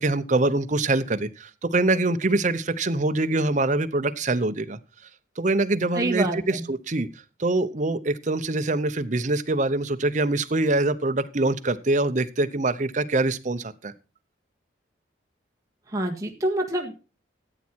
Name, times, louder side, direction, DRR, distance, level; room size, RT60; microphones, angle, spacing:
voice 1, 0.0-4.8 5.4-7.1 7.4-13.9, right 2 dB, 40° right, 11 dB, 0.8 m, -24 dB
voice 2, 5.9-6.6 15.9-16.9, right 1 dB, 20° right, -1 dB, 1.6 m, -26 dB
14.0 x 8.5 x 4.5 m, 0.33 s
head